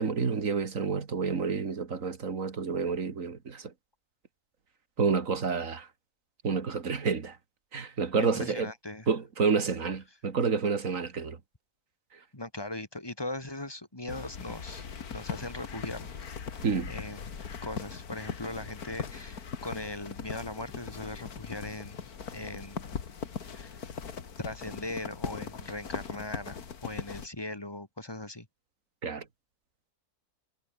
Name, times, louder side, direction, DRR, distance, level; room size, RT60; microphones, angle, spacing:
voice 1, 0.0-3.7 5.0-5.9 6.4-7.4 7.7-8.7 9.1-11.4 16.6-16.9 29.0-29.2, right 5 dB, 60° right, 2.3 m, -29 dB
voice 2, 8.2-9.1 12.3-14.8 15.1-17.3 17.6-22.0 22.3-22.9 23.5-23.8 24.4-28.5, left 2 dB, 15° left, 2.5 m, -39 dB
sound 1, 14.1-27.3, left 6 dB, 75° left, 2.3 m, -40 dB
omnidirectional pair, 1.6 m